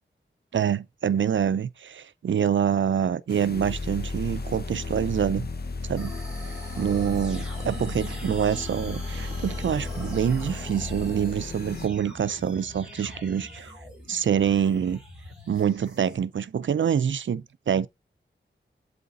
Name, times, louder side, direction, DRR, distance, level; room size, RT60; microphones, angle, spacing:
voice 1, 0.5-5.5 5.9-6.2 6.8-13.7 14.1-15.0 15.5-17.9, right 8 dB, 70° right, 0.5 m, -26 dB
sound 1, 3.3-11.9, left 3 dB, 50° left, 0.8 m, -34 dB
sound 2, 6.0-16.2, equal, 5° right, 3.4 m, -43 dB
7.9 x 3.4 x 4.0 m
cardioid pair, 50°, 20 cm